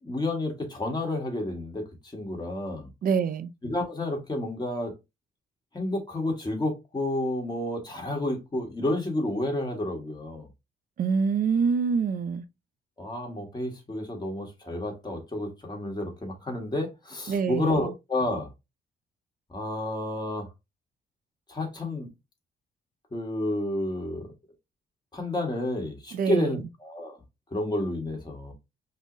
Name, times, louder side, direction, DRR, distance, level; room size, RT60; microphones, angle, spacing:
voice 1, 0.0-1.8 2.1-2.9 3.6-4.9 5.7-10.5 13.0-18.5 19.5-20.5 21.5-22.1 23.1-24.3 25.1-27.2 27.5-28.5, left 1 dB, 20° left, 1.5 m, -30 dB
voice 2, 3.0-3.5 11.0-12.4 17.3-17.9 26.1-26.6, right 6 dB, 45° right, 0.4 m, -26 dB
5.3 x 2.0 x 2.6 m
cardioid pair, 90°, 20 cm